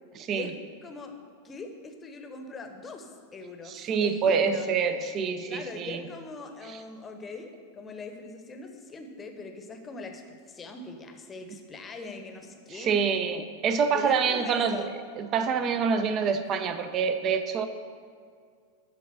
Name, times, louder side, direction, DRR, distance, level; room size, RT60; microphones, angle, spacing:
voice 1, 0.2-0.5 3.7-6.0 6.6-6.8 12.7-14.9 15.2-17.7, right 6 dB, 30° right, 9 dB, 0.6 m, -26 dB
voice 2, 0.8-1.1 1.4-4.7 5.4-13.2 13.9-14.9, left 3 dB, 20° left, 5 dB, 0.9 m, -41 dB
11.0 x 3.9 x 6.1 m, 2.1 s
figure-of-eight pair, 90°, 0 cm